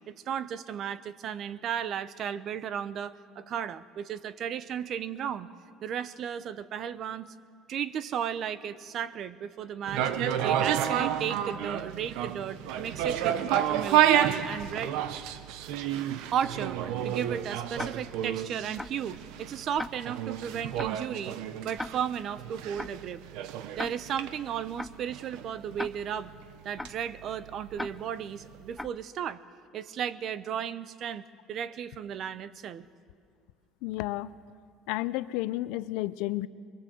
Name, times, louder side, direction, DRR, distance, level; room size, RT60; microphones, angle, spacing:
voice 1, 0.1-5.5 5.8-7.3 7.7-10.1 10.4-15.0 16.3-16.8 17.0-21.4 21.6-23.2 23.8-26.3 26.6-29.4 29.7-31.2 31.5-32.8, right 9 dB, 45° right, 16 dB, 0.8 m, -34 dB
sound 1, 9.9-28.0 28.3-28.4, right 10 dB, 75° right, 1.0 m, -30 dB
Tick-tock, 17.8-17.9 18.8-18.9 19.8-19.9 20.8-20.9 21.8-21.9 22.8-22.9 23.8-23.9 24.8-24.9 25.8-25.9 26.8-26.9 27.8-27.9 28.8-28.9, left 2 dB, 5° left, 0.5 m, -35 dB
voice 2, 33.8-34.3 34.9-36.5, left 17 dB, 80° left, 15 dB, 0.7 m, -31 dB
23.0 x 22.5 x 7.7 m, 2.1 s
cardioid pair, 150°, 0 cm